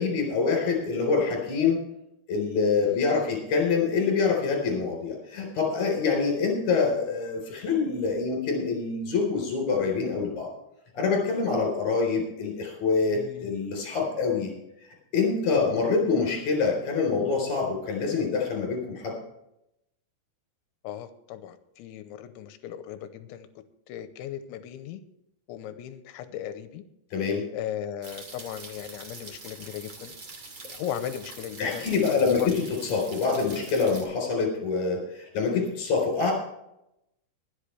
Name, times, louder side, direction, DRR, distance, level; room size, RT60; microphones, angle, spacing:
voice 1, 0.0-1.8 2.3-10.5 10.9-14.5 15.1-19.1 27.1-27.4 31.6-36.3, left 4 dB, 40° left, 0 dB, 4.8 m, -25 dB
voice 2, 2.8-3.4 13.1-13.6 15.5-15.8 20.8-23.5 23.9-25.0 25.5-26.8 27.5-30.1 30.7-32.6 36.0-36.1, left 10 dB, 85° left, 10 dB, 3.0 m, -37 dB
sound 1, 28.0-34.0, right 3 dB, 40° right, 2.0 m, -44 dB
24.5 x 8.3 x 3.3 m, 0.84 s
omnidirectional pair, 5.5 m